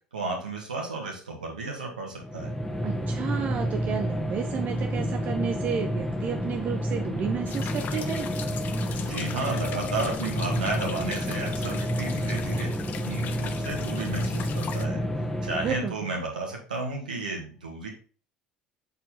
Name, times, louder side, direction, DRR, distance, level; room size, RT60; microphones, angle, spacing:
voice 1, 0.1-2.5 9.0-12.7 13.0-15.0 15.4-17.9, right 2 dB, 80° right, -1 dB, 2.1 m, -33 dB
sound 1, 2.2-16.0, equal, 10° left, 1.6 m, -30 dB
voice 2, 2.8-8.3 15.6-16.1, right 8 dB, 40° right, 5 dB, 0.8 m, -32 dB
sound 2, 7.5-14.8, left 8 dB, 45° left, 0.8 m, -40 dB
7.8 x 4.7 x 3.8 m, 0.39 s
figure-of-eight pair, 60°, 4 cm